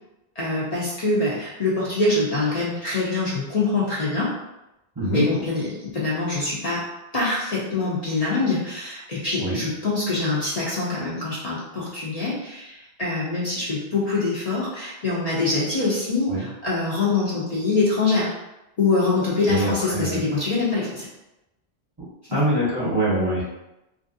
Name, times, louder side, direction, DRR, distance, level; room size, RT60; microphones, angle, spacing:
voice 1, 0.4-4.3 5.0-6.8 7.1-18.3 18.8-21.1 22.3-22.4, left 3 dB, 45° left, -8 dB, 0.6 m, -24 dB
voice 2, 19.5-20.2 22.3-23.4, right 1 dB, 25° right, -8 dB, 0.8 m, -24 dB
2.9 x 2.5 x 2.6 m, 0.93 s
omnidirectional pair, 1.1 m